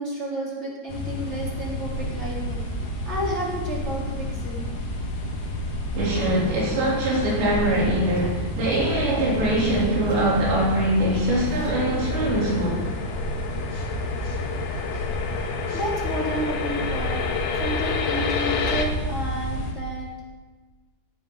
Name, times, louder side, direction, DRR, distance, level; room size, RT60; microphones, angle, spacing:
voice 1, 0.0-4.6 15.7-17.3 17.6-20.3, right 1 dB, 15° right, -4 dB, 3.4 m, -31 dB
sound 1, 0.9-19.7, equal, 40° left, 2.9 m, -30 dB
Car / Accelerating revving vroom, 4.9-14.1, right 1 dB, 10° left, 3.8 m, -37 dB
voice 2, 6.0-12.8 13.7-13.8 14.2-14.4 15.7-15.8, right 1 dB, 75° right, -5 dB, 5.7 m, -23 dB
sound 2, 12.0-18.9, left 7 dB, 85° left, 3.6 m, -30 dB
17.5 x 13.0 x 4.0 m, 1.3 s
omnidirectional pair, 5.1 m